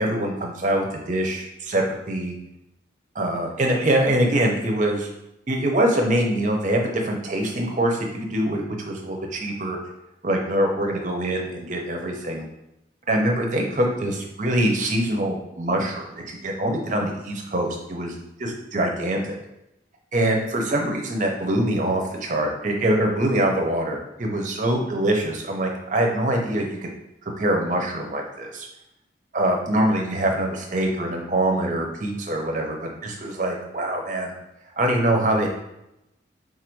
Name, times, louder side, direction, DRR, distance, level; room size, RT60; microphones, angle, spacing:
voice 1, 0.0-2.4 3.1-5.1 5.5-9.8 10.2-12.5 13.1-18.1 18.4-19.4 20.1-26.9 27.2-28.7 29.3-34.3 34.8-35.5, right 1 dB, 40° right, 1 dB, 0.7 m, -24 dB
3.9 x 2.6 x 4.5 m, 0.86 s
head